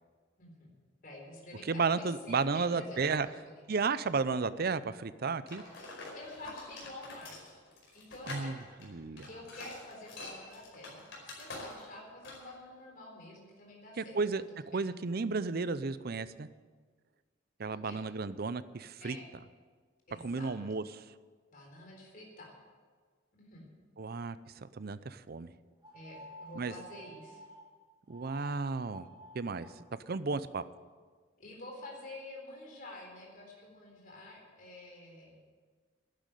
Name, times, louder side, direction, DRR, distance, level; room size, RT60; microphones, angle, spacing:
voice 1, 0.4-0.7 1.0-3.4 6.1-7.6 7.9-8.6 9.3-14.2 14.7-14.9 17.7-18.0 19.0-19.3 20.1-20.5 21.5-22.5 23.4-23.7 25.9-27.4 31.4-35.4, left 1 dB, 45° left, -1 dB, 4.0 m, -49 dB
voice 2, 1.7-3.3 3.7-5.6 8.3-9.3 14.0-16.5 17.6-19.2 20.2-21.0 24.0-25.5 26.6-26.7 28.1-29.1 29.3-30.6, right 4 dB, 50° right, 14 dB, 0.6 m, -33 dB
sound 1, 5.5-12.0 12.2-12.5, left 2 dB, 65° left, 5.1 m, -46 dB
sound 2, 25.8-27.6 28.1-28.5 28.8-29.7, right 1 dB, 25° right, 2.6 m, -52 dB
11.5 x 10.5 x 9.1 m, 1.5 s
head